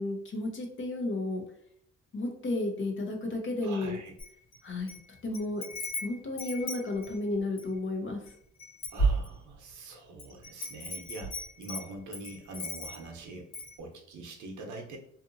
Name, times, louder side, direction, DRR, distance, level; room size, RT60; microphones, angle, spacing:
voice 1, 0.0-1.4 2.1-4.0 4.6-4.9 5.2-5.6 6.0-8.2, left 2 dB, 40° left, 3 dB, 0.7 m, -32 dB
voice 2, 3.6-4.1 8.9-13.5 13.8-15.0, right 2 dB, 75° right, 1 dB, 0.8 m, -44 dB
Wind chime, 4.2-5.0 5.3-7.8 8.3-8.4 8.6-9.7 10.2-13.1 13.5-13.8, right 2 dB, 60° left, 1.2 m, -34 dB
2.6 x 2.6 x 2.5 m, 0.67 s
cardioid pair, 90°, 30 cm